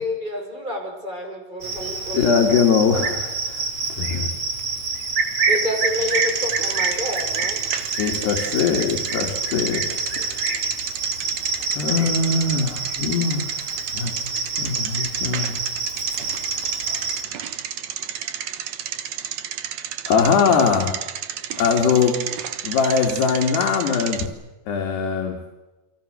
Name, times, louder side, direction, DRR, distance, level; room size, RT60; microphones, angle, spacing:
voice 1, 0.0-2.3 5.5-7.6, left 1 dB, 10° right, 2 dB, 5.9 m, -29 dB
Cricket, 1.6-17.2, right 4 dB, 35° right, 3.1 m, -27 dB
voice 2, 2.1-3.7 4.0-4.3 8.0-10.5 11.8-13.5 13.9-14.3 14.6-15.5 20.1-20.9 21.6-22.2 22.6-24.3 24.7-25.3, left 6 dB, 80° left, 2 dB, 4.4 m, -21 dB
Bicycle, 5.9-24.3, right 9 dB, 65° right, 1.8 m, -32 dB
29.5 x 23.5 x 6.8 m, 1.1 s
omnidirectional pair, 4.8 m